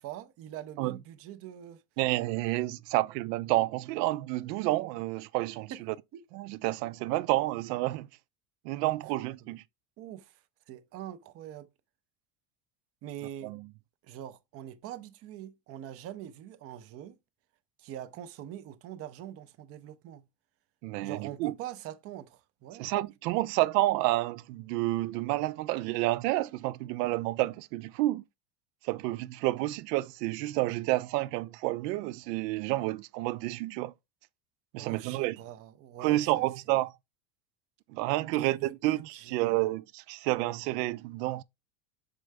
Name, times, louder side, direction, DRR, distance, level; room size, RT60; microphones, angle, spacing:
voice 1, 0.0-1.8 5.7-5.8 6.1-6.2 9.4-9.6 10.0-10.4 10.7-11.7 13.0-13.5 14.0-17.2 17.8-20.2 21.0-22.9 34.8-36.4 38.3-39.6, right 11 dB, 30° right, 0.4 m, -43 dB
voice 2, 2.0-6.0 6.3-8.1 8.6-9.6 13.4-13.7 20.8-21.5 22.8-28.2 28.8-33.9 34.7-35.4 36.0-36.9 37.9-41.4, right 17 dB, 85° right, 0.6 m, -30 dB
6.4 x 4.5 x 3.3 m
cardioid pair, 160°, 47 cm